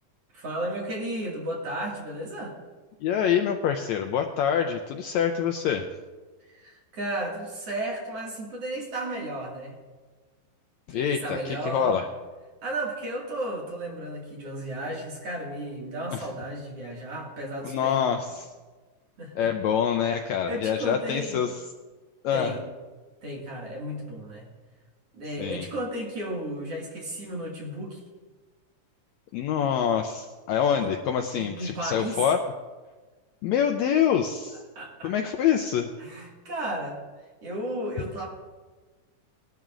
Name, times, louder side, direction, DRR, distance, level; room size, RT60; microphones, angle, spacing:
voice 1, 0.3-2.6 6.5-9.7 10.9-12.0 12.6-18.0 19.2-19.5 20.5-21.4 22.3-22.6 23.2-24.5 25.1-28.0 29.3-29.7 30.7-30.9 31.3-32.2 34.8-35.1 36.0-37.0 37.4-38.3, right 1 dB, 50° right, -2 dB, 2.9 m, -34 dB
voice 2, 3.0-5.9 10.9-12.0 16.1-16.2 17.6-18.5 19.4-21.5 22.2-22.5 25.4-25.7 29.3-32.4 33.4-34.6 35.0-35.9, left 8 dB, 85° left, 5 dB, 1.6 m, -25 dB
20.0 x 12.0 x 2.5 m, 1.3 s
omnidirectional pair, 3.8 m